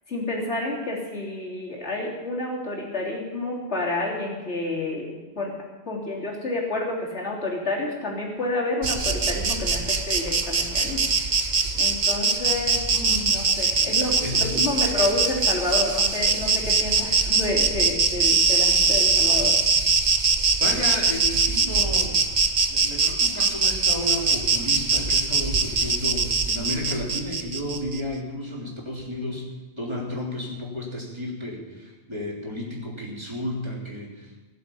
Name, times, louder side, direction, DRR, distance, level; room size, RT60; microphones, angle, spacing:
voice 1, 0.1-5.5 5.9-19.6, left 2 dB, 85° left, -4 dB, 3.7 m, -29 dB
Insect, 8.8-28.0, right 4 dB, 45° right, 1.1 m, -22 dB
voice 2, 13.9-14.5 20.6-22.2 22.7-29.5 29.8-34.3, left 1 dB, 25° right, -3 dB, 3.5 m, -32 dB
17.5 x 7.7 x 8.5 m, 1.3 s
omnidirectional pair, 1.1 m